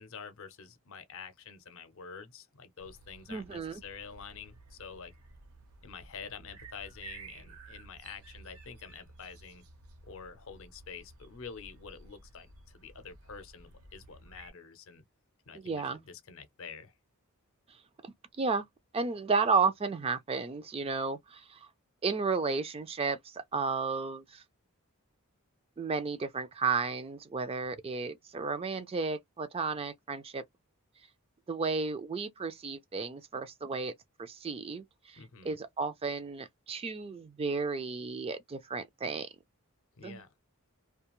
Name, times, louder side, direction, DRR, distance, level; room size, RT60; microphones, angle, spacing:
voice 1, 0.0-5.1 5.8-9.6 10.1-15.0 15.5-16.9 35.2-35.6 40.0-40.3, left 6 dB, 60° left, 0.6 m, -47 dB
sound 1, 2.8-14.5, right 3 dB, 75° right, 0.8 m, -53 dB
voice 2, 3.3-3.8 15.5-16.0 17.7-18.7 18.9-21.7 22.0-24.4 25.8-30.4 31.5-33.9 34.2-35.2 35.4-39.3 40.0-40.2, right 4 dB, 25° right, 0.3 m, -33 dB
2.4 x 2.3 x 2.9 m
head